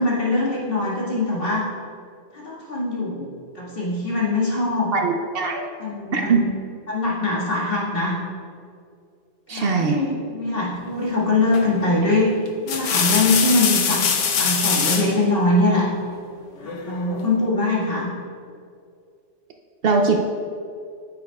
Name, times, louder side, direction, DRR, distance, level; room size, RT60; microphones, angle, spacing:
voice 1, 0.0-1.6 2.3-3.3 3.5-4.9 5.8-6.5 6.9-8.2 9.5-12.3 12.7-14.0 14.4-15.9 16.6-18.1, left 2 dB, 50° left, -7 dB, 2.1 m, -22 dB
voice 2, 4.9-5.6 6.1-6.4 9.5-10.0 19.8-20.2, right 4 dB, 60° right, 3 dB, 0.7 m, -20 dB
sound 1, 11.5-11.8 12.5-15.2 16.6-17.3, left 6 dB, 90° left, 1.1 m, -23 dB
9.4 x 8.5 x 2.3 m, 2.3 s
omnidirectional pair, 1.2 m